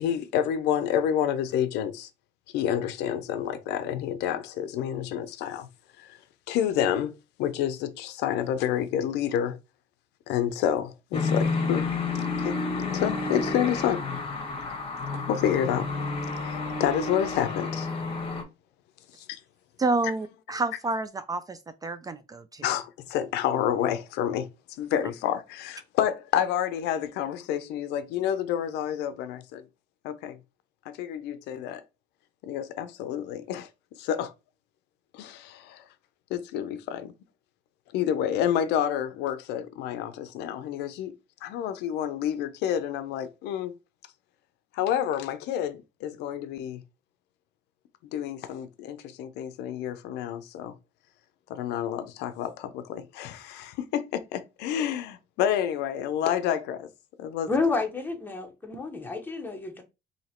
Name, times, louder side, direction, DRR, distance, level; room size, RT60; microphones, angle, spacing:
voice 1, 0.0-2.1 2.5-5.7 6.0-6.1 6.5-7.1 7.4-9.6 10.3-11.9 12.4-12.6 12.9-14.1 15.3-15.9 16.4-17.9 19.3-19.4 22.6-24.5 24.8-29.6 30.0-30.4 30.9-31.8 32.4-33.7 34.0-34.3 35.1-35.8 36.3-37.1 37.9-41.1 41.4-43.7 44.7-46.8 48.1-50.8 51.5-56.9 57.2-57.5, left 10 dB, 85° left, 0.5 m, -29 dB
sound 1, 11.1-18.4, left 3 dB, 35° left, 1.0 m, -30 dB
voice 2, 19.8-22.6, right 3 dB, 20° right, 0.3 m, -29 dB
voice 3, 57.5-59.8, left 3 dB, 10° left, 1.0 m, -29 dB
2.9 x 2.8 x 4.2 m
cardioid pair, 110°, 17 cm